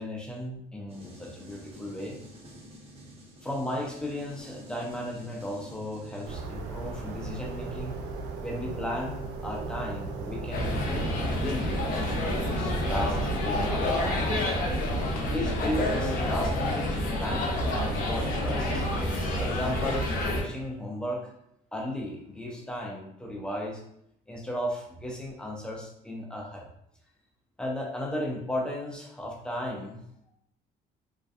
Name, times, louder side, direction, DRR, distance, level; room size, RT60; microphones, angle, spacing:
voice 1, 0.0-2.2 3.4-8.0 8.4-14.3 15.2-18.9 19.4-21.3 21.7-23.8 24.3-26.7 27.6-30.0, left 1 dB, 5° left, -2 dB, 0.6 m, -35 dB
sound 1, 0.9-6.3, equal, 35° right, 0.8 m, -48 dB
sound 2, 6.2-13.7, right 3 dB, 85° right, 0.4 m, -37 dB
sound 3, 10.5-20.4, left 1 dB, 55° left, 0.6 m, -28 dB
2.5 x 2.2 x 2.4 m, 0.74 s
cardioid pair, 110°, 17 cm